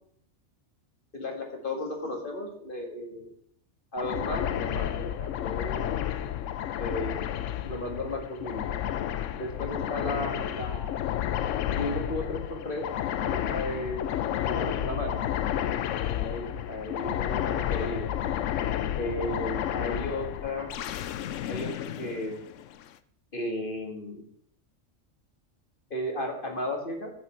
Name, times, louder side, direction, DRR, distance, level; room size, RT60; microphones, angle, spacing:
voice 1, 1.1-3.3 3.9-5.8 6.8-7.2 7.6-8.7 9.4-10.9 11.7-12.9 13.2-14.0 14.5-15.2 16.0-18.1 19.0-20.7 21.5-21.7 22.0-22.4 23.3-24.2 25.9-27.1, left 1 dB, 45° left, 2 dB, 2.1 m, -34 dB
sound 1, 4.0-22.8, left 10 dB, 80° left, 0.9 m, -31 dB
10.5 x 8.6 x 4.5 m, 0.64 s
omnidirectional pair, 1.3 m